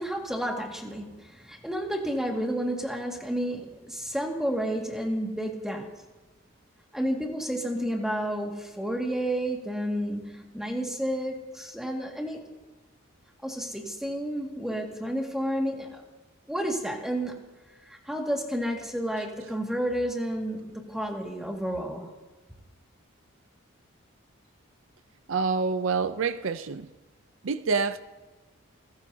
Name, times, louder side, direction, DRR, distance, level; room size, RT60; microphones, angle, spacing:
voice 1, 0.0-6.0 6.9-12.4 13.4-16.0 16.5-17.3 17.9-22.1, equal, ahead, 2.0 m, -31 dB
voice 2, 25.3-26.9 27.4-28.0, right 4 dB, 65° right, 0.5 m, -27 dB
28.5 x 15.0 x 2.8 m
head